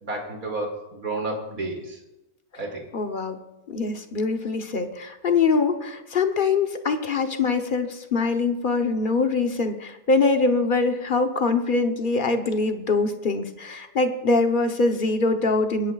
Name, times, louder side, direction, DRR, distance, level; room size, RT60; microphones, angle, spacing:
voice 1, 0.0-2.0 2.6-2.9, right 2 dB, 60° right, 1 dB, 2.9 m, -31 dB
voice 2, 2.9-3.4 3.7-15.9, left 3 dB, 40° left, 6 dB, 0.9 m, -23 dB
25.5 x 10.5 x 2.4 m, 0.96 s
omnidirectional pair, 1.6 m